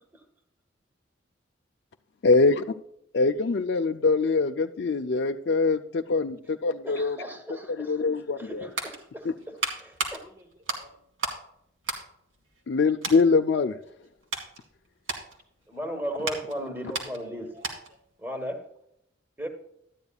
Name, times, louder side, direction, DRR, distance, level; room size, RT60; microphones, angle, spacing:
voice 1, 2.2-2.6 3.1-7.2 7.7-8.7 9.2-9.3 12.7-13.8, left 4 dB, 55° left, 0.4 m, -23 dB
voice 2, 6.8-7.9 8.5-9.6 9.8-10.2 15.7-17.6 18.2-18.6 19.4-19.5, equal, 10° right, 1.3 m, -36 dB
sound 1, 8.3-11.5 11.8-12.7 13.0-13.3 13.8-18.1 18.3-18.5, right 3 dB, 85° right, 2.2 m, -35 dB
voice 3, 10.2-11.0 17.1-18.0, equal, 35° right, 1.0 m, -53 dB
13.0 x 9.6 x 2.3 m
head